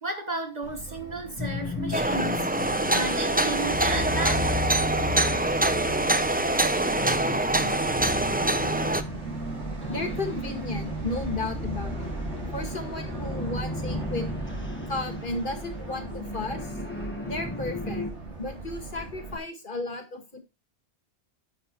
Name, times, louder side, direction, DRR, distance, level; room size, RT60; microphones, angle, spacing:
voice 1, 0.0-4.5 5.6-5.7 7.3-7.5 7.8-7.9 9.2-9.3 9.8-9.9, right 2 dB, 40° right, 1.2 m, -34 dB
Subway metro underground, 0.6-19.4, right 3 dB, 80° right, 2.7 m, -39 dB
sound 1, 1.4-18.1, left 2 dB, 10° left, 1.4 m, -34 dB
sound 2, 1.9-9.0, right 2 dB, 10° right, 0.5 m, -25 dB
voice 2, 9.9-12.1 12.5-14.3 14.9-16.7 17.2-18.1 18.4-20.4, left 2 dB, 45° left, 2.0 m, -33 dB
9.4 x 5.9 x 4.5 m
omnidirectional pair, 1.2 m